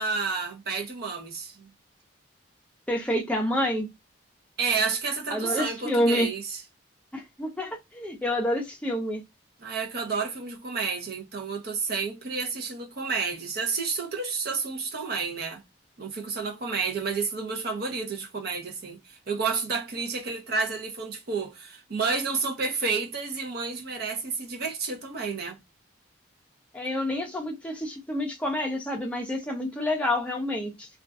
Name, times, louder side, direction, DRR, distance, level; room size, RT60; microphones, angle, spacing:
voice 1, 0.0-1.7 4.6-6.6 9.6-15.6 16.0-25.6, right 4 dB, 50° right, 0.7 m, -30 dB
voice 2, 2.9-3.9 5.3-6.3 7.1-9.2 26.7-30.9, left 1 dB, 5° left, 0.6 m, -28 dB
2.4 x 2.4 x 2.3 m
head